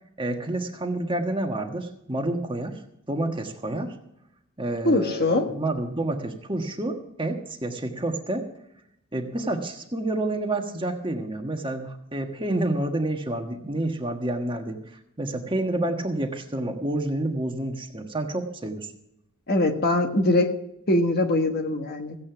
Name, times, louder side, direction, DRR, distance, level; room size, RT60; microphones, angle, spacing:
voice 1, 0.2-2.8 3.1-4.0 4.6-8.5 9.1-14.8 15.2-18.9, right 1 dB, 25° right, 3 dB, 1.4 m, -29 dB
voice 2, 4.8-5.5 19.5-20.5 20.9-22.2, left 2 dB, 50° left, 4 dB, 1.5 m, -22 dB
16.0 x 8.6 x 5.9 m, 0.78 s
head